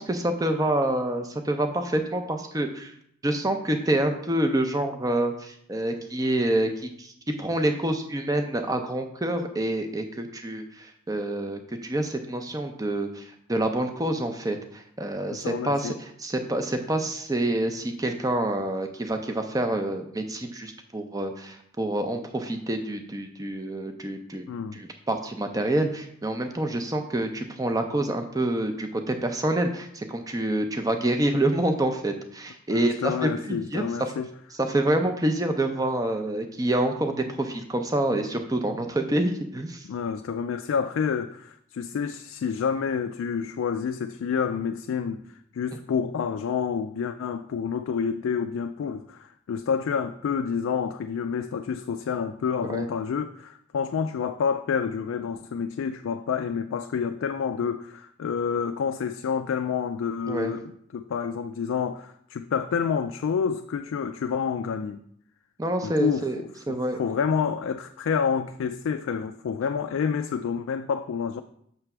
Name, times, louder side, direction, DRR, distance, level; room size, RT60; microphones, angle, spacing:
voice 1, 0.0-2.9 3.2-24.5 24.7-33.8 34.6-39.8 52.7-52.9 60.3-60.5 65.6-66.4 66.7-67.0, right 1 dB, 15° right, 0.5 m, -27 dB
voice 2, 15.3-16.0 24.5-24.8 32.7-34.3 39.8-45.2 45.5-65.0 65.8-71.4, left 6 dB, 75° left, 0.3 m, -28 dB
6.8 x 3.3 x 5.9 m
head